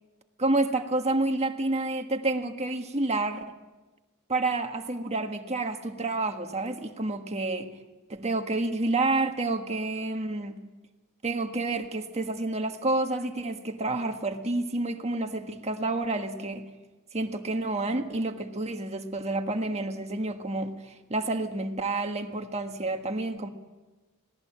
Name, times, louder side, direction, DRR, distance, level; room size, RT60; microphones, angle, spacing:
voice 1, 0.4-3.4 4.3-7.7 8.1-10.6 11.2-16.7 17.1-23.5, right 2 dB, 30° right, 5 dB, 1.6 m, -29 dB
26.5 x 19.0 x 7.5 m, 1.2 s
head